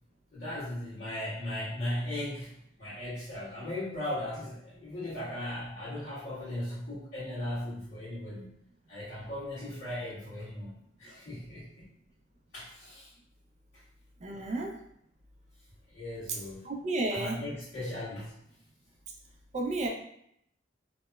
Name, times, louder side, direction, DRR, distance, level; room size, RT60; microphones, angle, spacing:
voice 1, 0.3-8.5 8.9-10.7 11.0-11.9 12.5-13.1 14.3-14.5 15.9-16.7 17.1-18.3, left 1 dB, 50° left, -17 dB, 1.4 m, -37 dB
voice 2, 14.2-14.7 16.6-17.4 19.5-19.9, right 2 dB, 35° right, 1 dB, 0.3 m, -31 dB
2.9 x 2.0 x 2.2 m, 0.74 s
head